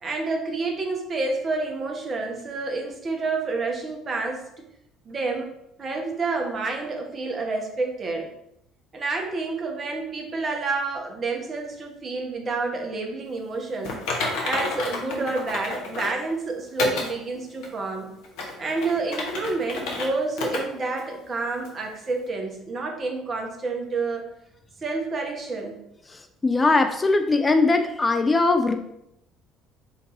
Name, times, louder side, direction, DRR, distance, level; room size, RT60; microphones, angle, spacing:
voice 1, 0.0-4.4 5.0-8.3 8.9-14.0 14.4-18.1 18.6-24.3 24.8-25.8, right 3 dB, 40° right, 2 dB, 0.9 m, -29 dB
Typing, 13.8-16.2 16.8-17.1 17.6-17.7 18.2-20.1 20.4-20.6 21.0-21.1 21.6-21.7, left 3 dB, 65° left, 0.8 m, -30 dB
voice 2, 26.4-28.8, left 3 dB, 25° left, 7 dB, 0.4 m, -20 dB
4.4 x 2.7 x 3.9 m, 0.80 s
figure-of-eight pair, 55°, 0 cm